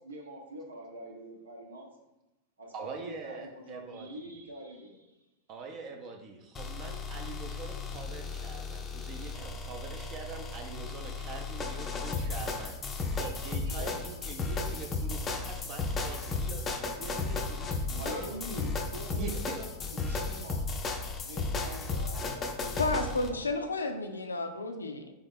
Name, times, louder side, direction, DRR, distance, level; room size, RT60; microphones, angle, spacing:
voice 1, 0.0-1.9 2.6-5.1 13.2-13.3 13.6-14.0 17.9-20.6 21.2-23.7, right 1 dB, 70° right, 0 dB, 0.7 m, -44 dB
voice 2, 2.7-4.4 5.5-12.8 13.1-18.3 19.1-19.6, right 4 dB, 35° right, 3 dB, 0.5 m, -44 dB
sound 1, 6.5-23.3, left 3 dB, 25° left, 0.5 m, -34 dB
voice 3, 22.8-25.1, left 2 dB, 75° left, 7 dB, 0.4 m, -32 dB
3.8 x 3.5 x 3.5 m, 0.98 s
figure-of-eight pair, 90°, 0 cm